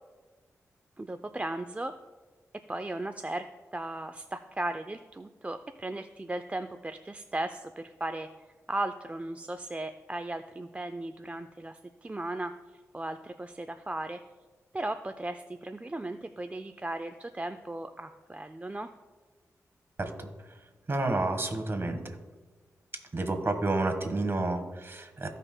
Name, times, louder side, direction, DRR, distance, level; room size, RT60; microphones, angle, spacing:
voice 1, 1.0-1.9 2.7-3.4 3.7-8.3 8.7-12.5 12.9-14.2 14.7-18.9, right 2 dB, 25° right, 8 dB, 0.4 m, -36 dB
voice 2, 20.0-20.3 20.9-22.2 23.1-25.3, right 2 dB, 40° right, 5 dB, 1.4 m, -30 dB
15.5 x 5.5 x 2.2 m, 1.3 s
cardioid pair, 50°, 6 cm